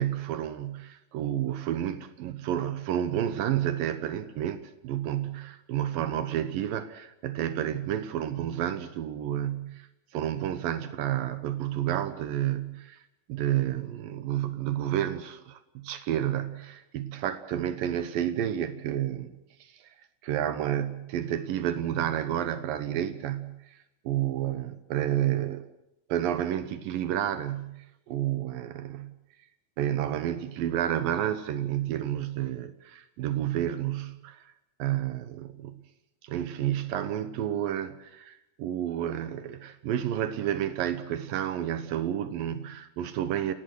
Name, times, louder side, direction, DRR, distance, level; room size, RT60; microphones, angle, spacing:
voice 1, 0.0-9.9 10.1-13.0 13.3-19.3 19.6-19.8 20.2-23.6 24.1-25.7 26.1-29.1 29.8-34.5 34.8-35.8 36.2-43.5, right 11 dB, 80° right, 12 dB, 2.0 m, -30 dB
28.5 x 18.5 x 6.3 m, 0.86 s
omnidirectional pair, 5.7 m